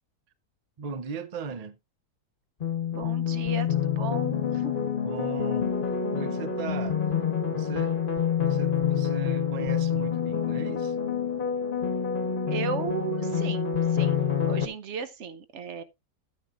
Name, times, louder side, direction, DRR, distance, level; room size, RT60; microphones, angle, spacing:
voice 1, 0.8-1.8 5.0-5.7 6.1-7.0 7.5-8.0 8.4-11.0, right 5 dB, 80° right, 0.3 m, -37 dB
sound 1, 2.6-14.6, left 7 dB, 35° left, 1.1 m, -27 dB
voice 2, 2.9-4.9 12.5-15.8, right 6 dB, 55° right, 0.9 m, -36 dB
11.5 x 9.2 x 2.5 m
omnidirectional pair, 1.7 m